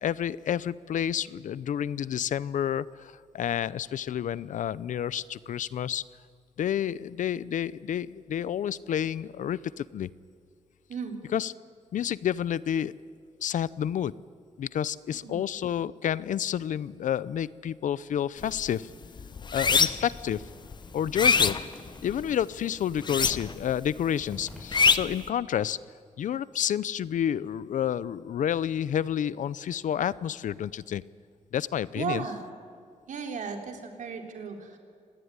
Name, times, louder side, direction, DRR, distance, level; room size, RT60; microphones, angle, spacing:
voice 1, 0.0-6.0 6.6-10.1 11.3-11.5 11.9-12.9 13.4-14.1 14.6-18.9 19.5-20.5 20.9-21.6 22.0-25.8 26.2-31.0 31.5-32.2, left 9 dB, 80° left, 19 dB, 0.6 m, -29 dB
voice 2, 15.1-15.4 32.0-32.4 33.1-34.8, right 6 dB, 75° right, 4 dB, 3.7 m, -35 dB
sound 1, 18.4-18.7 19.0-20.2 20.7-22.3 23.0-23.7 24.0-25.2, left 5 dB, 35° left, 0.8 m, -24 dB
sound 2, 19.6-25.9, equal, 5° left, 6.2 m, -50 dB
26.0 x 19.0 x 9.8 m, 2.2 s
wide cardioid pair, 165°, 13 cm